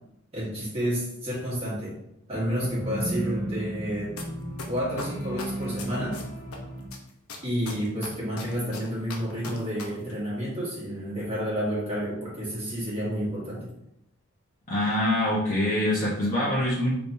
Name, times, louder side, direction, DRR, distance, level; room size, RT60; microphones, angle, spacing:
voice 1, 0.3-2.0 2.3-4.2 4.7-6.2 7.4-13.7, equal, 30° right, -8 dB, 1.7 m, -30 dB
sound 1, 2.3-6.9, right 1 dB, 15° left, 1.2 m, -34 dB
sound 2, 4.2-4.3 4.6-6.6 6.9-9.8 10.1-10.2, left 4 dB, 85° left, 0.8 m, -38 dB
voice 2, 14.7-16.9, left 1 dB, 40° left, -8 dB, 1.1 m, -24 dB
5.0 x 3.5 x 2.7 m, 0.81 s
head